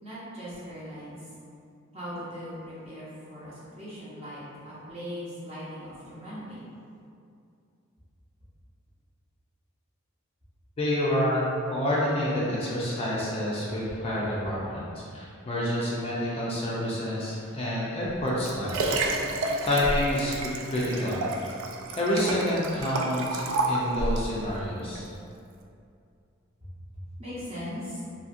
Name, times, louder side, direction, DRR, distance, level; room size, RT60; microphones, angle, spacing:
voice 1, 0.0-1.3 1.9-6.6 26.6-28.0, equal, 30° right, -9 dB, 0.8 m, -39 dB
voice 2, 10.8-18.9 19.6-21.2 22.0-25.0, left 1 dB, 30° left, -7 dB, 0.4 m, -28 dB
Liquid, 18.0-24.3 25.0-25.1, right 2 dB, 70° right, 0.3 m, -30 dB
2.7 x 2.7 x 2.4 m, 2.5 s
head